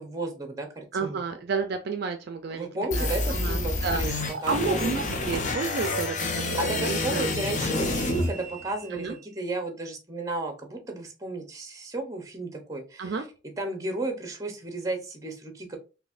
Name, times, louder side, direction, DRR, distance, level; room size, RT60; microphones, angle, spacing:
voice 1, 0.0-1.2 2.5-4.9 6.6-13.2 13.6-15.8, right 2 dB, 15° right, 4 dB, 0.7 m, -33 dB
voice 2, 0.9-2.7 3.0-7.3 8.9-9.2 13.0-13.3, right 4 dB, 50° right, 7 dB, 0.3 m, -31 dB
sound 1, 2.9-8.9, left 2 dB, 40° left, 0.5 m, -28 dB
4.0 x 2.7 x 2.5 m, 0.32 s
head